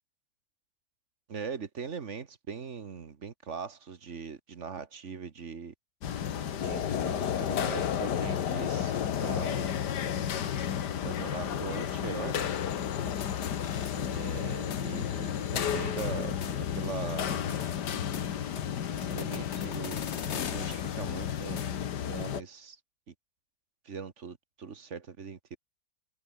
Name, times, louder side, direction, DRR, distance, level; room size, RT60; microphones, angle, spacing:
voice 1, 1.3-5.7 6.6-9.7 11.0-12.5 13.9-16.4 16.8-17.4 19.0-20.0 20.3-21.6 22.1-22.8 23.8-25.6, right 5 dB, 45° right, 1.7 m, -40 dB
sound 1, 6.0-22.4, left 9 dB, 85° left, 1.8 m, -32 dB
sound 2, 13.0-14.5 14.7-14.9 15.3-17.0 17.3-22.1, left 8 dB, 50° left, 1.2 m, -42 dB
omnidirectional pair, 1.7 m